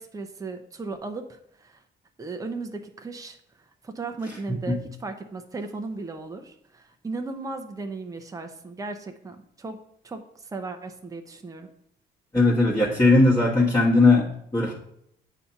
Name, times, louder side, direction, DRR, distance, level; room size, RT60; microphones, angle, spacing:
voice 1, 0.0-1.8 2.2-3.4 3.8-11.7, right 3 dB, 15° right, 5 dB, 0.7 m, -36 dB
voice 2, 12.3-14.3 14.5-14.7, left 2 dB, 20° left, -6 dB, 1.3 m, -18 dB
8.1 x 2.8 x 5.7 m, 0.73 s
cardioid pair, 90°, 20 cm